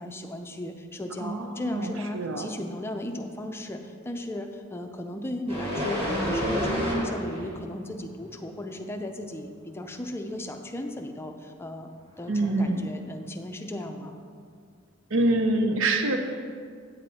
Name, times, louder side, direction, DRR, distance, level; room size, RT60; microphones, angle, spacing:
voice 1, 0.0-11.9 12.2-14.2, left 1 dB, 10° left, 4 dB, 0.5 m, -36 dB
voice 2, 1.2-2.5 12.3-12.9 15.1-16.2, right 2 dB, 65° right, 5 dB, 0.6 m, -25 dB
sound 1, 5.5-7.5 8.0-8.1, equal, 30° right, 2.3 m, -28 dB
9.4 x 7.1 x 4.2 m, 2.2 s
head